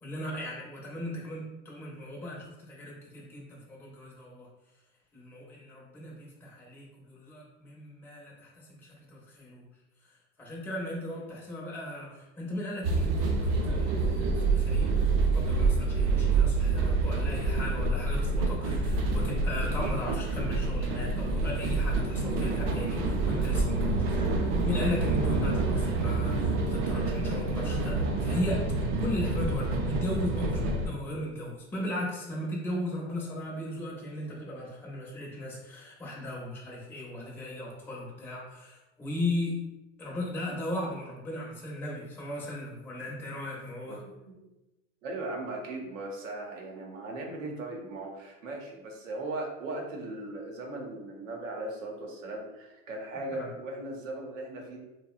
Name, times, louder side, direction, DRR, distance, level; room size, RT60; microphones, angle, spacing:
voice 1, 0.0-4.5 5.1-9.6 10.4-24.2 24.6-39.5 40.0-44.0 53.3-53.5, left 1 dB, 5° left, -4 dB, 0.5 m, -37 dB
sound 1, 12.8-30.9, right 3 dB, 45° right, 0.5 m, -27 dB
voice 2, 43.9-44.4 45.0-54.8, right 2 dB, 90° right, 0 dB, 0.7 m, -38 dB
2.7 x 2.1 x 2.3 m, 1.0 s
hypercardioid pair, 100°, 37 cm